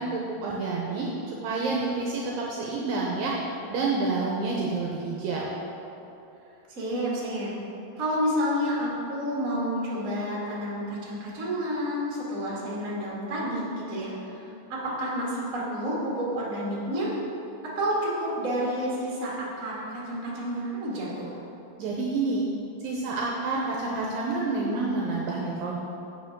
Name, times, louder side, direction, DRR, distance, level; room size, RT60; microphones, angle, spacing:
voice 1, 0.0-3.3 3.7-5.5 21.8-22.5 22.8-25.8, right 3 dB, 75° right, -2 dB, 2.2 m, -28 dB
voice 2, 6.7-7.5 7.9-17.1 17.7-21.4, equal, 30° right, -6 dB, 1.6 m, -30 dB
8.6 x 5.8 x 6.0 m, 2.9 s
omnidirectional pair, 4.6 m